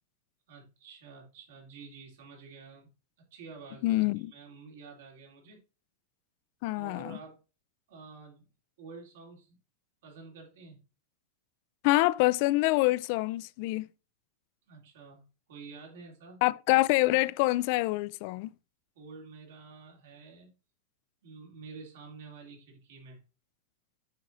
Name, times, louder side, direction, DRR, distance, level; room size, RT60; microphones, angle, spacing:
voice 1, 0.5-2.9 3.3-5.6 6.7-7.4 7.9-8.5 8.8-9.6 10.0-10.8 14.7-16.4 18.9-20.5 21.2-23.2, right 4 dB, 75° right, 3.0 m, -49 dB
voice 2, 3.8-4.3 6.6-7.2 11.8-13.9 16.4-18.5, left 20 dB, 50° left, 0.3 m, -26 dB
7.5 x 6.1 x 2.6 m
supercardioid pair, 150°, 0 cm